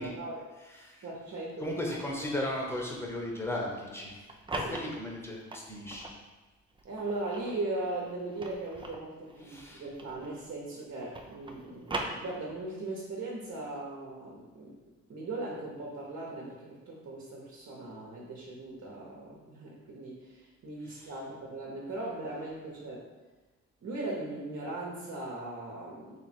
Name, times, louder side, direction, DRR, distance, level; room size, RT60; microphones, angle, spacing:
voice 1, 0.0-0.4 1.0-1.8 4.6-4.7 6.8-14.8 15.1-23.0 23.8-26.2, right 2 dB, 55° right, -3 dB, 1.1 m, -39 dB
voice 2, 0.6-1.1 1.6-4.3 4.6-6.1 9.4-9.9 20.8-21.1, left 1 dB, 10° left, -2 dB, 1.1 m, -36 dB
sound 1, 4.1-6.2 6.8-10.5 10.8-12.8, right 2 dB, 15° right, 0.5 m, -40 dB
3.3 x 3.2 x 4.5 m, 1.3 s
cardioid pair, 90°, 30 cm